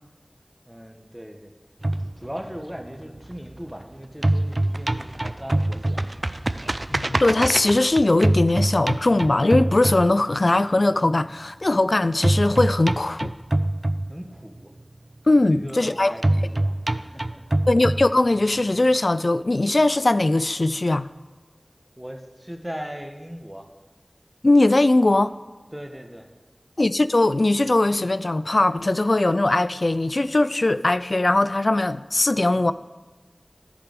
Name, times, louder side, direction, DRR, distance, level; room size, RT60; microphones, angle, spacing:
voice 1, 0.7-1.5 2.2-6.0 14.1-14.7 15.5-17.4 22.0-23.7 25.7-26.3, equal, 10° right, 1.2 m, -38 dB
sound 1, 1.8-3.8 4.1-10.6 12.2-14.6 16.2-18.6, right 1 dB, 55° right, 0.4 m, -24 dB
voice 2, 6.9-13.3 15.3-16.1 17.7-21.1 24.4-25.3 26.8-32.7, left 2 dB, 65° left, 0.3 m, -20 dB
14.0 x 4.8 x 5.2 m
wide cardioid pair, 40°, 0 cm